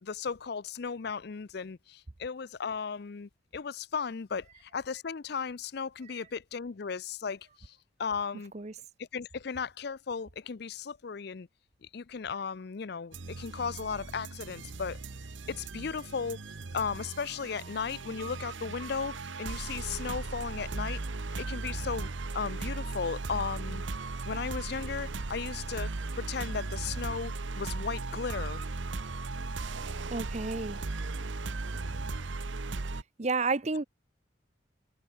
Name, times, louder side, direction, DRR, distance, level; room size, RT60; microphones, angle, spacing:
voice 1, 0.0-8.5 9.0-11.5 11.9-15.0 15.5-16.4 16.7-21.0 21.4-23.8 24.3-28.6, left 5 dB, 55° left, 0.5 m, -36 dB
sound 1, 13.1-33.0, right 3 dB, 70° right, 0.9 m, -37 dB
voice 2, 30.1-30.8 33.2-33.8, right 3 dB, 35° right, 0.7 m, -30 dB
head